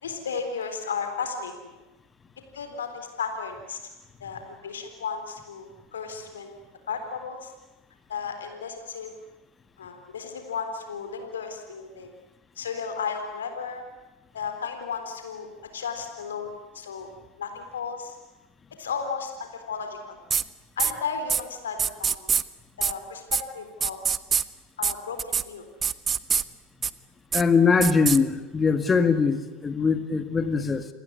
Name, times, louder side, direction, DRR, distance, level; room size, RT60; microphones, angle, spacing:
voice 1, 0.0-1.8 2.5-3.9 4.2-5.7 5.9-6.6 6.9-7.5 8.1-9.1 9.8-12.1 12.6-13.8 14.3-17.1 17.4-18.2 18.8-20.2 20.8-22.3 22.8-24.0 24.8-25.7, left 6 dB, 80° left, 6 dB, 3.8 m, -34 dB
sound 1, 20.3-20.4 20.8-20.9 21.3-21.4 21.8-22.4 22.8-22.9 23.3-23.4 23.8-24.4 24.8-24.9 25.2-25.4 25.8-26.4 26.8-26.9 27.3-27.4 27.8-28.2, right 7 dB, 30° right, 1.1 m, -24 dB
voice 2, 27.3-30.9, left 5 dB, 20° left, 10 dB, 2.0 m, -22 dB
28.5 x 20.5 x 9.7 m, 1.1 s
hypercardioid pair, 80°, 0 cm